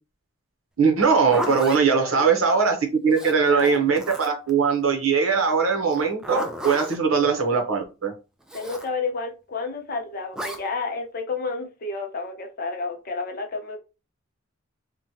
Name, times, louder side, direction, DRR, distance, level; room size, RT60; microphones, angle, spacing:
voice 1, 0.8-8.1, right 5 dB, 80° right, 0.8 m, -21 dB
Zipper (clothing), 1.0-1.8 3.1-4.5 5.9-7.0 8.5-8.9 10.3-10.6, equal, 5° right, 0.3 m, -33 dB
voice 2, 1.9-2.3 3.5-3.8 8.5-13.8, left 4 dB, 50° left, 0.7 m, -31 dB
2.9 x 2.1 x 2.7 m
head